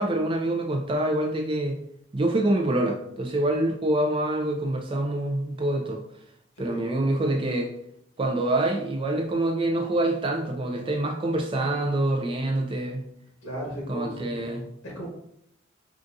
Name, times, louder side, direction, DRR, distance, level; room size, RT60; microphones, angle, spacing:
voice 1, 0.0-1.8 2.1-6.0 6.6-7.7 8.2-13.0 13.9-14.6, right 1 dB, 25° right, 2 dB, 0.3 m, -26 dB
voice 2, 13.4-15.1, right 1 dB, 75° left, -4 dB, 1.2 m, -36 dB
3.9 x 2.4 x 2.5 m, 0.73 s
head